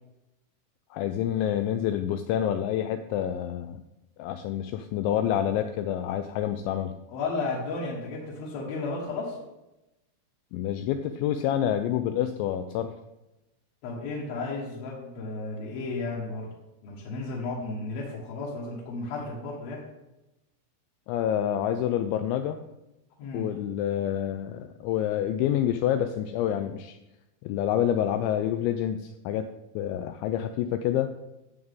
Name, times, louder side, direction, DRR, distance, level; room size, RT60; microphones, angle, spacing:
voice 1, 0.9-3.8 4.2-7.0 10.5-12.9 21.1-22.6 23.3-27.0 27.4-29.5 29.8-31.1, left 10 dB, 85° left, 8 dB, 2.6 m, -28 dB
voice 2, 7.1-9.4 13.8-16.5 16.8-19.8 23.2-23.5, left 3 dB, 65° left, -4 dB, 2.7 m, -33 dB
13.0 x 7.9 x 3.6 m, 0.96 s
omnidirectional pair, 5.7 m